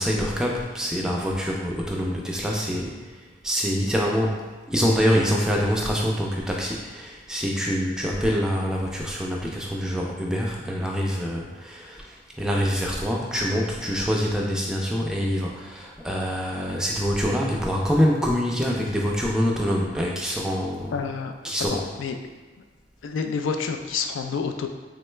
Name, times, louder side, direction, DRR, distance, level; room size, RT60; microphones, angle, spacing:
voice 1, 0.0-4.4 4.7-20.9 21.4-21.9, equal, 5° right, -2 dB, 0.3 m, -25 dB
voice 2, 20.9-21.3 21.7-22.2 23.0-24.7, left 5 dB, 80° left, 5 dB, 0.3 m, -28 dB
3.7 x 2.1 x 3.2 m, 1.4 s
head